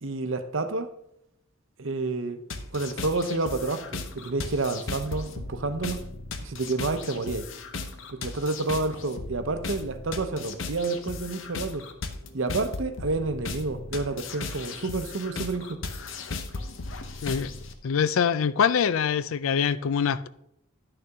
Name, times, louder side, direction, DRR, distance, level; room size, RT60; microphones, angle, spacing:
voice 1, 0.0-0.9 1.8-2.4 2.7-6.0 6.4-7.5 8.1-11.9 12.3-15.8, right 3 dB, 75° right, 0.8 m, -29 dB
sound 1, 2.5-17.7, left 3 dB, 70° left, 0.8 m, -37 dB
voice 2, 17.8-20.3, left 7 dB, 90° left, 0.4 m, -24 dB
10.5 x 6.7 x 3.6 m
head